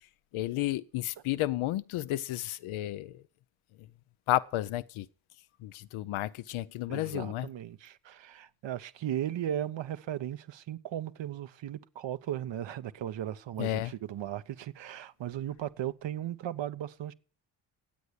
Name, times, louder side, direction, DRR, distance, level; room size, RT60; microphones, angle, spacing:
voice 1, 0.3-3.2 3.8-3.9 4.3-5.1 5.6-7.5 13.6-13.9, left 15 dB, 75° left, 0.7 m, -32 dB
voice 2, 6.9-17.1, right 11 dB, 60° right, 0.9 m, -36 dB
10.5 x 8.1 x 8.1 m
supercardioid pair, 55°, 49 cm